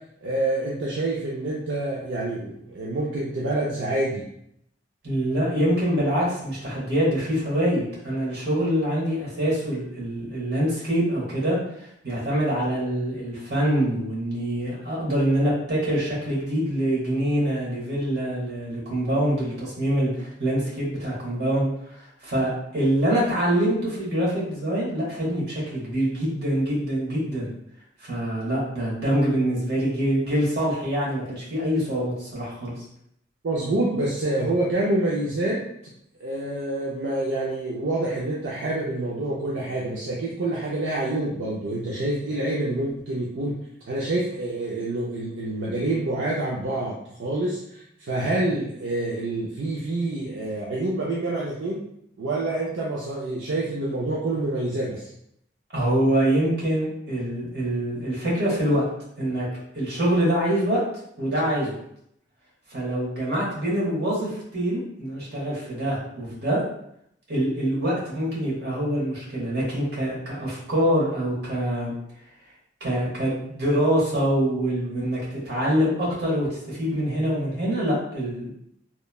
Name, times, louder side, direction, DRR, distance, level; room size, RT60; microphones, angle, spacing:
voice 1, 0.2-4.3 33.4-35.6 36.2-43.5 43.9-51.8 52.2-55.1, right 2 dB, 75° right, -5 dB, 0.5 m, -27 dB
voice 2, 5.0-27.5 28.0-32.8 55.7-58.9 59.2-60.8 61.2-61.8 62.7-66.6 67.3-71.9 72.8-78.5, right 1 dB, 60° right, -5 dB, 1.0 m, -25 dB
3.0 x 2.1 x 2.3 m, 0.74 s
head